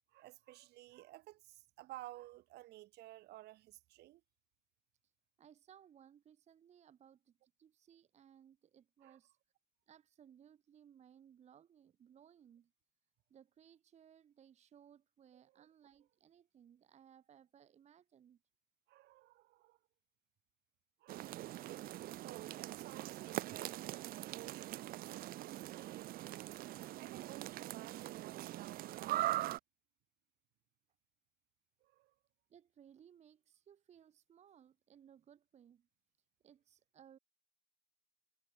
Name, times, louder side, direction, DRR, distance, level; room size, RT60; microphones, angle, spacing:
voice 1, 0.1-4.2 9.0-9.2 15.5-15.7 18.9-19.8 21.0-21.3 22.2-26.6 27.0-29.3 31.8-32.1, right 17 dB, 80° right, 1.7 m, -55 dB
voice 2, 5.4-9.4 9.9-12.7 13.3-18.4 32.5-35.9 36.4-37.2, right 9 dB, 40° right, 0.8 m, -63 dB
sound 1, 21.1-29.6, right 15 dB, 60° right, 0.4 m, -42 dB
cardioid pair, 110°, 17 cm